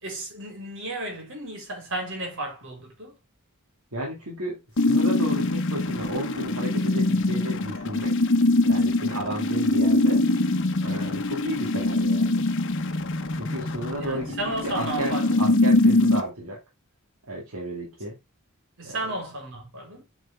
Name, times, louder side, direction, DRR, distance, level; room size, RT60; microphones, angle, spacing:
voice 1, 0.0-3.2 14.0-15.4 18.8-20.0, right 1 dB, 60° right, 4.2 m, -33 dB
voice 2, 3.9-8.2 8.6-10.2 10.8-12.4 13.3-14.4 14.6-16.6 17.3-18.2 18.8-19.0, right 1 dB, 80° right, 2.3 m, -33 dB
sound 1, 4.8-16.2, left 2 dB, 55° left, 1.0 m, -23 dB
8.0 x 5.0 x 3.5 m
head